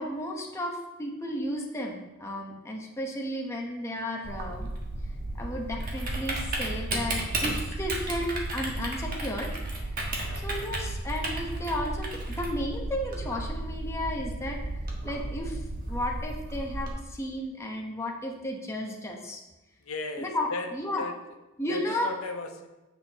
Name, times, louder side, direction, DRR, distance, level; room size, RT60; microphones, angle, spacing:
voice 1, 0.0-4.7 5.4-9.5 9.9-10.0 10.4-14.6 15.0-19.4 20.2-21.0 21.6-22.1, left 1 dB, 15° left, -1 dB, 0.9 m, -33 dB
Typing, 4.2-16.9, right 2 dB, 45° right, 1.3 m, -33 dB
voice 2, 19.8-20.7 21.0-21.1 21.7-22.7, left 3 dB, 90° left, 5 dB, 0.7 m, -36 dB
7.7 x 6.7 x 2.9 m, 1.1 s
head